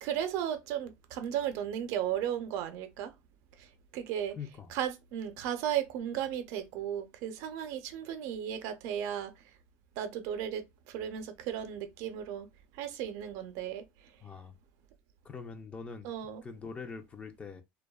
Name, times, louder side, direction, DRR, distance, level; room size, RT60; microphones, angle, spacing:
voice 1, 0.0-3.1 3.6-4.4 4.7-9.3 10.0-12.5 12.7-13.9 16.0-16.4, right 10 dB, 70° right, 0.5 m, -35 dB
voice 2, 4.4-4.7 14.2-14.5 15.2-16.1 16.4-17.6, left 5 dB, 20° left, 0.5 m, -43 dB
2.6 x 2.2 x 2.2 m
supercardioid pair, 125°, 6 cm